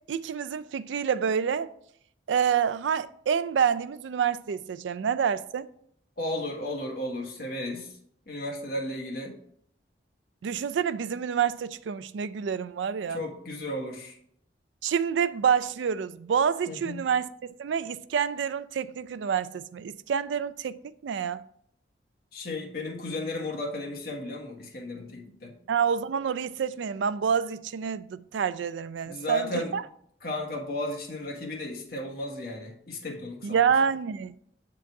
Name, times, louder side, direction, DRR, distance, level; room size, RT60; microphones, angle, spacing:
voice 1, 0.1-1.7 2.3-5.7 10.4-13.2 14.8-17.3 17.6-21.5 25.7-29.8 33.4-34.3, right 7 dB, 85° right, 0.4 m, -27 dB
voice 2, 6.2-7.9 8.3-9.4 13.1-14.2 16.7-17.0 22.3-25.5 29.0-29.7 30.2-33.6, left 1 dB, 55° left, 1.5 m, -34 dB
7.5 x 3.9 x 4.6 m
head